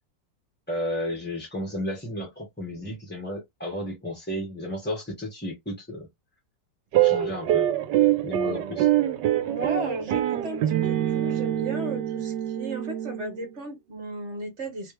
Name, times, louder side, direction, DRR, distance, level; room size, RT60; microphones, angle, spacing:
voice 1, 0.7-6.1 6.9-7.7 8.2-8.9, left 1 dB, 5° left, 0.9 m, -33 dB
sound 1, 6.9-13.5, right 12 dB, 80° right, 1.3 m, -25 dB
voice 2, 8.4-8.8 9.4-14.9, right 1 dB, 45° right, 1.4 m, -35 dB
3.2 x 3.1 x 3.2 m
omnidirectional pair, 1.9 m